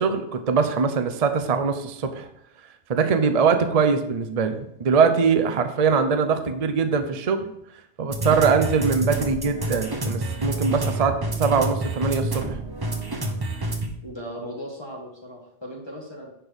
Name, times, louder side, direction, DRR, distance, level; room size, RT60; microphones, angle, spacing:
voice 1, 0.0-2.3 2.9-7.5 8.0-12.5, right 5 dB, 40° right, 8 dB, 0.7 m, -22 dB
sound 1, 8.1-13.9, right 2 dB, 20° right, 1.0 m, -28 dB
voice 2, 14.0-16.3, equal, 20° left, -3 dB, 1.6 m, -37 dB
10.0 x 4.5 x 5.1 m, 0.76 s
omnidirectional pair, 1.2 m